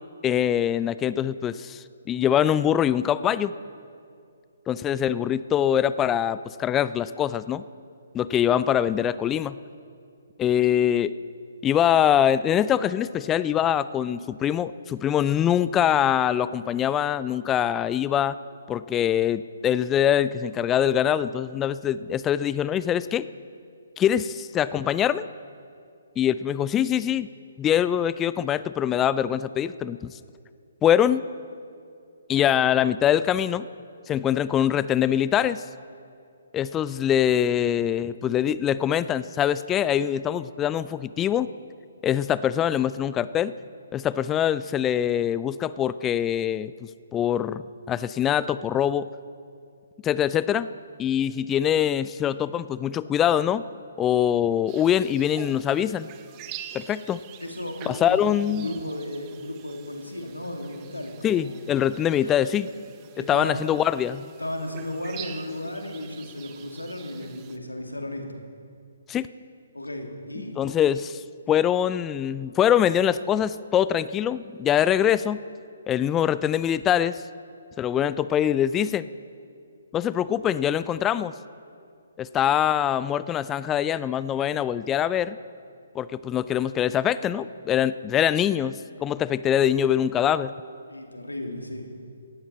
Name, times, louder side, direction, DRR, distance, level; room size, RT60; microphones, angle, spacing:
voice 1, 0.2-3.5 4.7-7.6 8.1-9.6 10.4-11.1 11.6-18.4 18.7-23.3 24.0-25.3 26.2-27.3 27.6-30.1 30.8-31.2 32.3-33.7 34.1-35.6 36.5-41.5 42.0-43.5 43.9-46.7 47.1-49.1 50.0-50.7 51.0-53.6 54.0-56.1 56.7-57.2 57.9-58.7 61.2-62.7 63.3-64.3 69.1-69.3 70.6-75.4 75.9-77.2 77.8-79.1 79.9-81.3 82.2-85.4 86.0-90.5, left 10 dB, 15° left, 16 dB, 0.3 m, -23 dB
sound 1, 54.7-67.6, right 10 dB, 25° right, 0.8 m, -45 dB
voice 2, 57.4-61.5 62.2-62.4 63.1-63.8 64.4-68.4 69.7-70.5 90.9-91.9, left 1 dB, 85° left, 3 dB, 2.2 m, -34 dB
17.5 x 15.0 x 4.2 m, 2.3 s
figure-of-eight pair, 135°, 0 cm